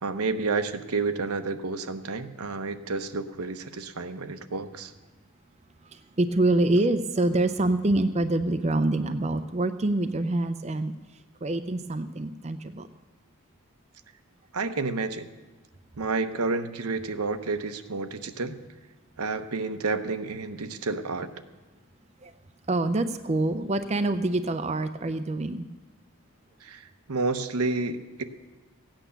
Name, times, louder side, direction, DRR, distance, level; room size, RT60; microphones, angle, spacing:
voice 1, 0.0-4.9 14.5-15.3 16.0-18.6 19.2-21.3 26.6-28.2, right 3 dB, 85° right, 9 dB, 0.9 m, -30 dB
voice 2, 5.8-10.9 11.4-12.9 22.2-22.3 22.7-25.7, right 2 dB, 30° right, 9 dB, 0.5 m, -26 dB
15.5 x 9.0 x 7.0 m, 1.3 s
head